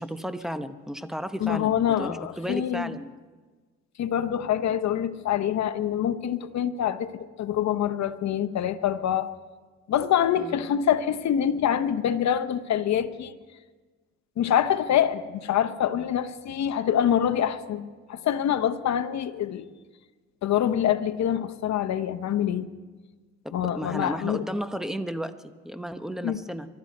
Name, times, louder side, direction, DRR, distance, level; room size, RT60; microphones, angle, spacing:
voice 1, 0.0-3.1 10.4-10.6 23.4-26.7, equal, ahead, 10 dB, 1.0 m, -33 dB
voice 2, 1.4-2.9 4.0-7.1 7.4-9.3 9.9-13.4 14.4-19.6 20.4-22.7 23.5-24.4 26.2-26.4, left 10 dB, 65° left, 12 dB, 0.9 m, -25 dB
23.5 x 13.0 x 4.3 m, 1.3 s
cardioid pair, 90°, 30 cm